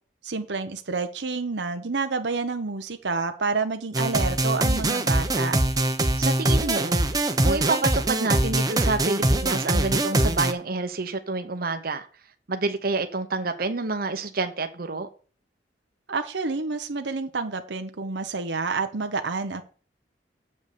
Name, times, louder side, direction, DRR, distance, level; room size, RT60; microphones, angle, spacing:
voice 1, 0.2-5.5 16.1-19.6, right 4 dB, 85° right, 0.9 m, -29 dB
sound 1, 3.9-10.5, right 1 dB, 20° right, 0.9 m, -23 dB
voice 2, 6.2-7.0 7.4-12.1 12.5-15.1, right 3 dB, 60° right, 1.0 m, -28 dB
8.0 x 5.4 x 6.8 m
head